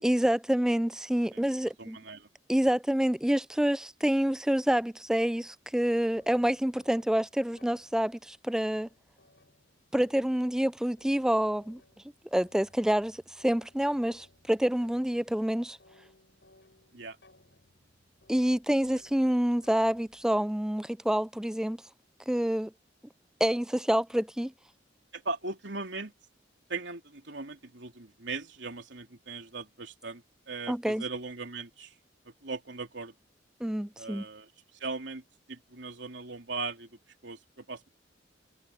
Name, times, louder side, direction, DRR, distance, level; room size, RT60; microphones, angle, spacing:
voice 1, 0.0-2.0 2.5-8.9 9.9-11.8 12.3-15.8 18.3-21.8 22.3-22.7 23.4-24.5 30.7-31.0 33.6-34.3, equal, 5° right, 0.3 m, -27 dB
voice 2, 1.8-2.3 16.9-17.2 25.1-26.1 26.7-31.9 32.2-33.1 34.0-34.5 34.8-35.2 35.5-36.9 37.2-37.9, right 3 dB, 75° right, 3.3 m, -39 dB
sound 1, 6.1-20.3, left 1 dB, 70° left, 7.2 m, -63 dB
head